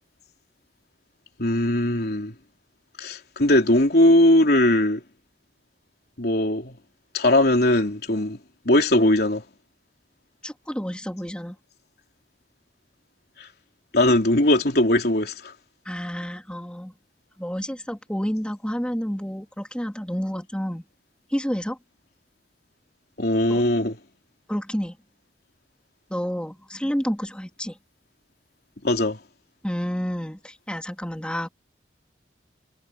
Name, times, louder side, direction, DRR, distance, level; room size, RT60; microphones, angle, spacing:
voice 1, 1.4-2.3 3.0-5.0 6.2-6.7 7.1-8.4 8.7-9.4 13.9-15.5 23.2-23.9 28.8-29.2, left 1 dB, 60° left, 3.7 m, -19 dB
voice 2, 10.4-11.6 15.8-16.9 17.4-20.8 21.3-21.8 23.5-23.6 24.5-25.0 26.1-27.8 29.6-31.5, equal, 5° left, 3.1 m, -29 dB
head